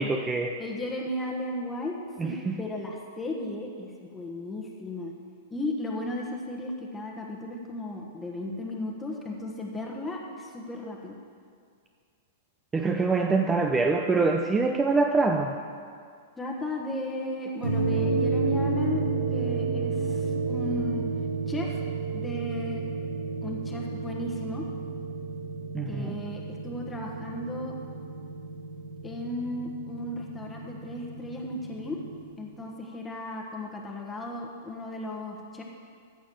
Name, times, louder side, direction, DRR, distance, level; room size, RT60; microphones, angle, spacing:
voice 1, 0.0-0.5 2.2-2.6 12.7-15.5 25.7-26.2, right 3 dB, 15° right, 3 dB, 0.6 m, -25 dB
voice 2, 0.6-1.9 2.2-5.1 5.5-11.1 16.4-19.0 19.3-21.0 21.5-21.8 22.1-22.8 23.4-24.7 25.9-27.7 29.0-32.0 32.4-35.6, left 1 dB, 10° left, -1 dB, 1.3 m, -35 dB
sound 1, 17.6-32.2, right 4 dB, 90° right, 1.6 m, -31 dB
14.5 x 4.8 x 7.6 m, 2.1 s
hypercardioid pair, 135°, 0 cm